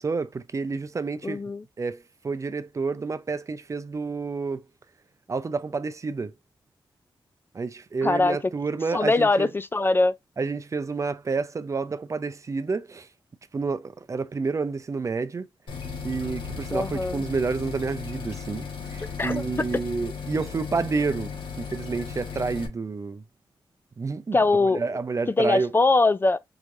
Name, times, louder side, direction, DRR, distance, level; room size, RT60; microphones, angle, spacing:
voice 1, 0.0-1.4 1.8-4.6 5.3-6.3 7.5-9.5 10.4-13.1 13.5-15.5 16.0-21.3 21.6-23.2 24.0-24.4 24.7-25.7, right 4 dB, 40° right, 0.5 m, -29 dB
voice 2, 1.2-1.6 8.0-8.4 8.9-10.2 16.7-17.2 19.2-19.5 24.3-24.8 25.3-26.4, left 3 dB, 25° left, 0.3 m, -22 dB
sound 1, 15.7-22.7, left 5 dB, 85° left, 1.2 m, -36 dB
4.7 x 3.1 x 2.5 m
cardioid pair, 85°, 8 cm